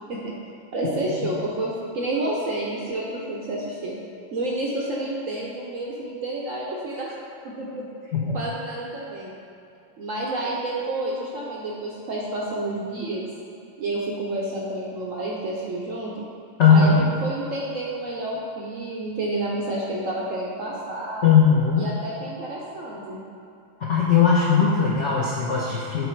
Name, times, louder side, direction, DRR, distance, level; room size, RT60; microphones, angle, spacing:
voice 1, 0.7-4.0 4.3-7.1 7.4-7.9 8.3-9.3 10.0-13.3 13.8-16.1 16.7-21.3 21.8-23.2, right 1 dB, 65° right, -4 dB, 0.8 m, -29 dB
voice 2, 16.6-16.9 21.2-21.9 23.8-26.1, left 6 dB, 60° left, -5 dB, 0.7 m, -18 dB
7.2 x 4.1 x 4.5 m, 2.6 s
omnidirectional pair, 2.1 m